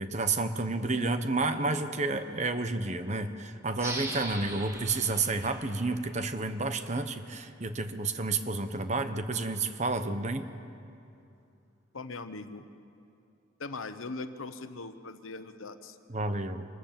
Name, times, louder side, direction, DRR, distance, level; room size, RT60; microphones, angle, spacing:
voice 1, 0.0-10.5 16.1-16.6, right 3 dB, 35° right, 9 dB, 1.0 m, -30 dB
sound 1, 3.7-7.0, right 1 dB, 15° right, 1.8 m, -41 dB
voice 2, 11.9-12.7 13.6-16.0, left 3 dB, 80° left, 10 dB, 1.1 m, -40 dB
25.5 x 20.5 x 7.5 m, 2.6 s
head